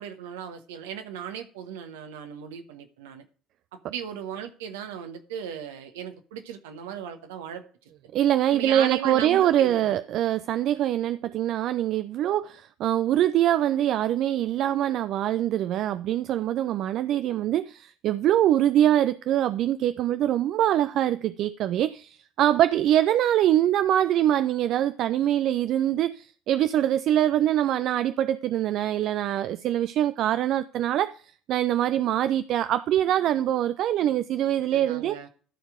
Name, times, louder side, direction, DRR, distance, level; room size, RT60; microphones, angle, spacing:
voice 1, 0.0-3.2 3.7-7.6 8.5-10.0 34.7-35.3, right 8 dB, 70° right, 1.2 m, -37 dB
voice 2, 8.1-31.2 31.5-35.2, right 12 dB, 55° right, 0.4 m, -24 dB
13.0 x 4.6 x 5.0 m
figure-of-eight pair, 55°, 0 cm